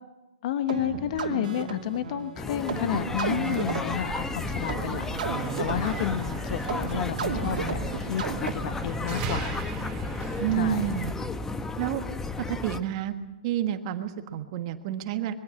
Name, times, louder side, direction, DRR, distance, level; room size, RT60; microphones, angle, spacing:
voice 1, 0.4-8.2 8.5-9.5 10.5-10.9, left 11 dB, 50° left, 11 dB, 1.0 m, -31 dB
sound 1, 0.7-8.9, right 7 dB, 65° right, 2.7 m, -34 dB
sound 2, 2.4-12.8, left 3 dB, 10° left, 0.9 m, -33 dB
sound 3, 4.0-11.1, right 6 dB, 25° right, 3.1 m, -40 dB
voice 2, 10.4-11.1 11.8-12.0 12.4-13.2 13.4-15.3, right 11 dB, 40° right, 8 dB, 1.5 m, -29 dB
22.0 x 15.5 x 8.7 m, 1.1 s
hypercardioid pair, 145°, 5 cm